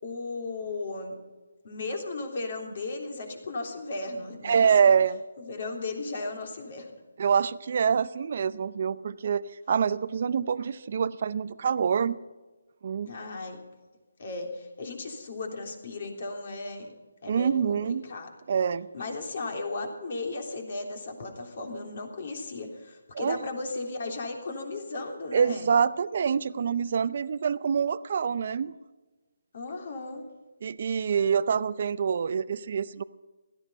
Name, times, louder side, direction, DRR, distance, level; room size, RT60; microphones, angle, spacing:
voice 1, 0.0-1.1 1.6-4.7 5.4-6.9 13.1-13.6 14.2-16.9 17.2-18.3 18.9-25.7 29.5-30.2, left 3 dB, 45° left, 3 dB, 3.4 m, -36 dB
voice 2, 4.4-5.2 7.2-12.2 12.8-13.3 17.3-18.0 18.5-18.9 23.1-23.4 25.3-28.7 30.6-33.0, right 7 dB, 45° right, 14 dB, 0.6 m, -26 dB
16.5 x 14.0 x 5.6 m, 1.2 s
hypercardioid pair, 165°, 0 cm